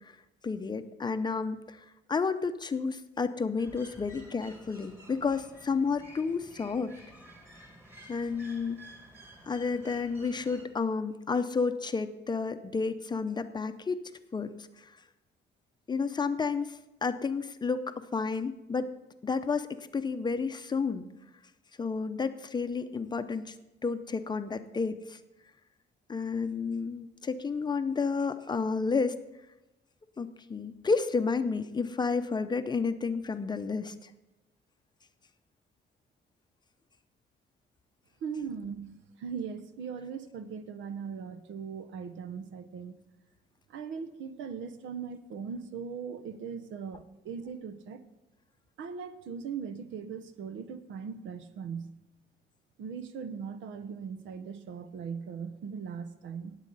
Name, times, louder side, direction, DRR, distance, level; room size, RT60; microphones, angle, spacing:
voice 1, 0.4-1.8 2.1-6.9 8.1-8.8 9.5-14.0 14.3-14.5 14.8-14.9 15.9-18.9 19.2-19.7 19.9-21.1 21.8-23.5 23.8-25.2 26.1-29.2 30.2-34.1, left 4 dB, 20° left, 10 dB, 0.6 m, -31 dB
sound 1, 3.6-10.7, right 1 dB, 10° right, 1.9 m, -52 dB
voice 2, 38.2-38.9 39.2-43.0 43.7-48.0 48.8-51.9 52.8-56.6, right 6 dB, 85° right, 11 dB, 0.9 m, -39 dB
18.5 x 8.2 x 4.0 m, 0.98 s
cardioid pair, 135°, 19 cm